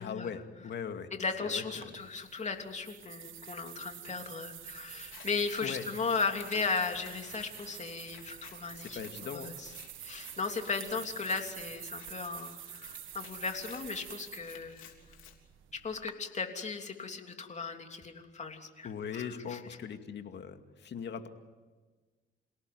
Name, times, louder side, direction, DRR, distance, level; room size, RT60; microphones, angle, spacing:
voice 1, 0.0-1.1 1.4-2.0 5.6-5.9 8.8-9.5 18.8-21.3, left 7 dB, 60° left, 7 dB, 2.3 m, -40 dB
voice 2, 1.1-9.0 9.3-9.7 10.0-14.9 15.8-19.6, left 4 dB, 35° left, 4 dB, 3.2 m, -36 dB
sound 1, 1.8-16.1, right 12 dB, 80° right, 1.4 m, -48 dB
Scissors, 5.0-15.3, left 9 dB, 90° left, 3.4 m, -55 dB
28.5 x 18.0 x 9.5 m, 1.3 s
cardioid pair, 90°, 20 cm